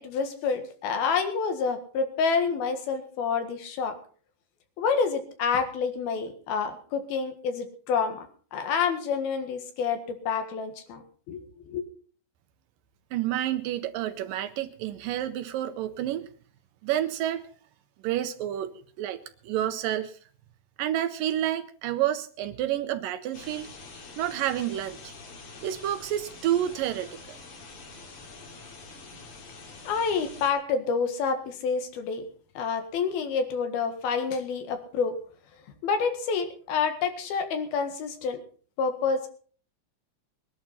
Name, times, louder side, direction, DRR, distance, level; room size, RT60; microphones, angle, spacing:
voice 1, 0.0-4.0 4.8-11.0 11.3-11.9 29.9-32.2 32.6-35.2 35.8-38.4 38.8-39.3, left 5 dB, 85° left, 8 dB, 3.6 m, -28 dB
voice 2, 13.1-16.3 16.8-17.4 18.0-20.1 20.8-23.7 24.2-25.1 25.6-27.4, right 12 dB, 75° right, 10 dB, 2.3 m, -29 dB
sound 1, 23.3-30.5, left 3 dB, 55° left, 3.8 m, -46 dB
21.5 x 11.5 x 4.2 m, 0.44 s
omnidirectional pair, 4.2 m